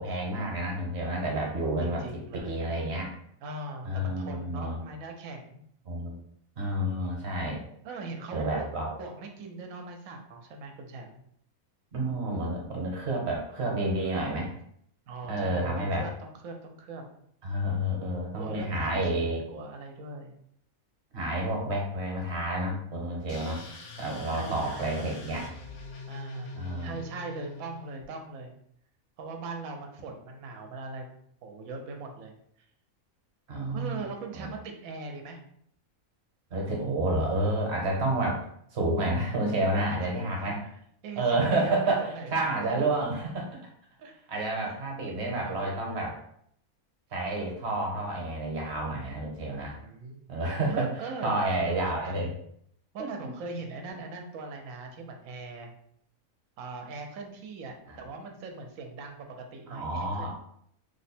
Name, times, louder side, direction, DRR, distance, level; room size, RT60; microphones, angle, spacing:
voice 1, 0.0-2.0 2.4-3.1 3.8-4.8 5.9-6.1 6.6-7.6 8.3-9.0 11.9-14.5 15.3-16.1 17.4-19.4 21.1-23.6 24.0-25.5 26.5-26.9 33.5-34.0 34.3-34.5 36.5-38.5 38.7-40.6 41.2-43.6 44.3-46.1 47.1-49.8 50.3-50.9 51.2-52.3 53.0-53.3 57.9-58.0 59.7-60.3, right 1 dB, 50° right, -1 dB, 1.1 m, -29 dB
voice 2, 1.8-2.7 3.4-5.6 7.8-11.2 15.1-17.0 18.3-20.4 24.3-25.2 26.1-26.5 26.8-28.5 29.2-31.1 31.4-32.3 33.7-35.4 39.9-40.7 41.0-42.4 42.8-42.9 44.0-44.1 44.6-44.8 45.3-46.1 49.5-50.2 50.7-52.3 52.9-55.7 56.6-60.3, right 3 dB, 70° right, 3 dB, 1.0 m, -41 dB
sound 1, 23.3-28.0, left 3 dB, 70° left, 1.0 m, -44 dB
3.1 x 2.1 x 4.2 m, 0.69 s
omnidirectional pair, 1.5 m